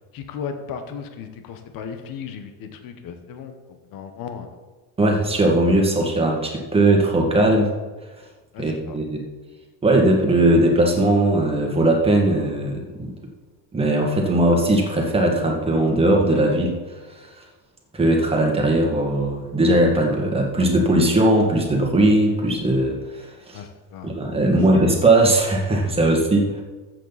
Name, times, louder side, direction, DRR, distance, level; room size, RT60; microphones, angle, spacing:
voice 1, 0.1-4.6 8.5-8.9 23.5-24.1 24.4-24.7, left 6 dB, 55° left, 7 dB, 1.4 m, -36 dB
voice 2, 5.0-7.7 8.6-9.2 9.8-13.1 13.7-16.8 17.9-23.6 24.0-26.6, right 1 dB, 15° right, 0 dB, 2.0 m, -19 dB
14.0 x 7.9 x 4.2 m, 1.3 s
cardioid pair, 150°, 42 cm